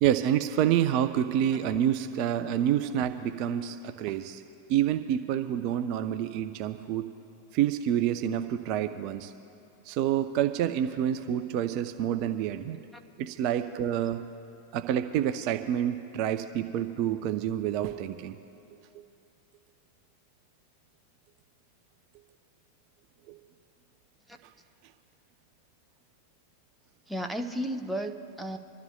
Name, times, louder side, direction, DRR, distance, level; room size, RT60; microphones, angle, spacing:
voice 1, 0.0-4.4 4.7-7.1 7.5-9.3 9.9-12.8 13.2-14.2 14.7-18.4 23.3-23.4, right 10 dB, 45° right, 8 dB, 0.5 m, -28 dB
voice 2, 27.1-28.6, equal, 5° right, 5 dB, 0.7 m, -33 dB
27.5 x 13.0 x 2.3 m, 2.7 s
figure-of-eight pair, 90°, 0 cm